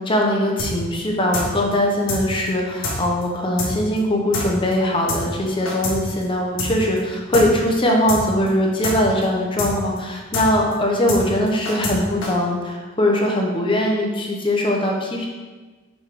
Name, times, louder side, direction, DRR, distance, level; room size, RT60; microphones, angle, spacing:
voice 1, 0.0-15.3, left 1 dB, 25° left, -1 dB, 0.8 m, -21 dB
sound 1, 0.6-0.7 1.0-1.1 1.3-1.5 1.7-1.8 2.1-2.2 2.5-2.6 2.8-3.0 3.2-3.3 3.6-3.7 4.0-4.1 4.3-4.5 4.7-4.8 5.1-5.2 5.5-6.0 6.2-6.3 6.6-6.7 7.0-7.1 7.3-7.5 7.7-7.8 8.1-8.2 8.5-8.6 8.8-9.0 9.2-9.3 9.6-9.7 10.0-10.1 10.3-10.5 10.7-10.8 11.1-11.2 11.5-12.0 12.2-12.3, left 2 dB, 75° left, 1.5 m, -26 dB
6.2 x 3.5 x 4.9 m, 1.3 s
head